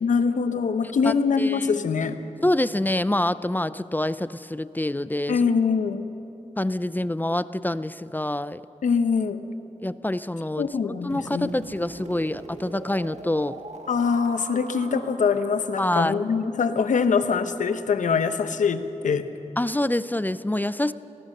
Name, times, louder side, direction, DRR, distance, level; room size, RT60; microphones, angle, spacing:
voice 1, 0.0-2.2 5.3-6.0 8.8-9.4 10.6-11.5 13.9-19.3, left 5 dB, 90° left, 10 dB, 1.0 m, -23 dB
voice 2, 1.0-1.7 2.4-5.4 6.6-8.6 9.8-13.6 15.8-16.2 19.6-20.9, left 1 dB, 15° left, 15 dB, 0.5 m, -26 dB
sound 1, 11.1-17.0, right 3 dB, 65° right, 1.6 m, -42 dB
25.5 x 18.5 x 6.7 m, 2.8 s
cardioid pair, 60°, 13 cm